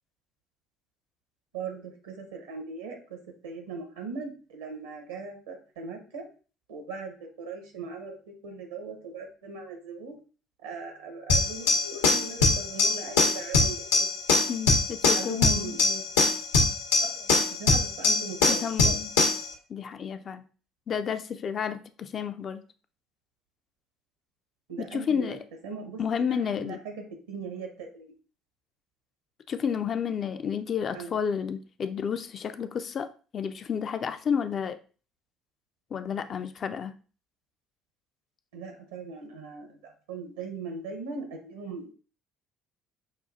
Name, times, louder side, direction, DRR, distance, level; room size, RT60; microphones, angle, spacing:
voice 1, 1.5-3.2 3.4-6.2 6.7-10.1 10.6-14.1 15.1-16.0 17.1-19.0 24.7-25.4 25.6-28.1 30.9-31.1 38.5-41.9, right 4 dB, 75° right, 0.9 m, -39 dB
sound 1, 11.3-19.5, left 2 dB, 75° left, 0.8 m, -23 dB
voice 2, 14.5-15.8 18.5-19.1 19.7-20.5 20.9-22.6 24.8-25.4 26.0-26.8 29.5-34.8 35.9-36.9, left 7 dB, 45° left, 0.4 m, -31 dB
5.3 x 2.4 x 2.5 m
figure-of-eight pair, 55°, 0 cm